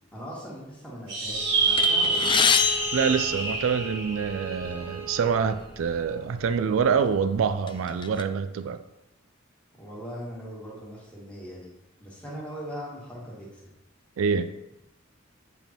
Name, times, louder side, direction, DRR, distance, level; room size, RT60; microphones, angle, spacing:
voice 1, 0.1-2.6 9.8-11.7 12.0-13.7, equal, 5° left, 1.9 m, -40 dB
sound 1, 1.1-5.8, right 3 dB, 60° right, 1.7 m, -28 dB
Bowed string instrument, 1.3-6.2, right 6 dB, 20° right, 1.3 m, -41 dB
sound 2, 1.8-4.1 4.9-5.1 5.4-5.6 6.4-6.6 7.1-8.2, left 7 dB, 25° left, 0.3 m, -26 dB
voice 2, 2.9-8.8 14.2-14.5, right 6 dB, 80° right, 0.4 m, -26 dB
8.1 x 3.5 x 4.5 m
head